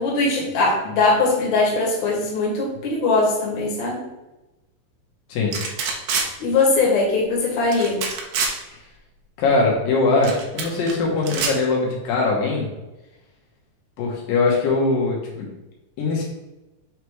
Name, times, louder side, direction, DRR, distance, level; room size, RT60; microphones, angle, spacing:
voice 1, 0.0-4.0 6.4-8.0, left 3 dB, 60° left, -3 dB, 2.7 m, -20 dB
sound 1, 5.5-6.3 7.7-8.5 10.2-10.9 11.2-11.5, right 5 dB, 70° right, 2.2 m, -25 dB
voice 2, 9.4-12.7 14.0-15.5 16.0-16.2, left 3 dB, 85° left, -3 dB, 3.0 m, -21 dB
6.7 x 3.3 x 4.6 m, 1.0 s
omnidirectional pair, 3.9 m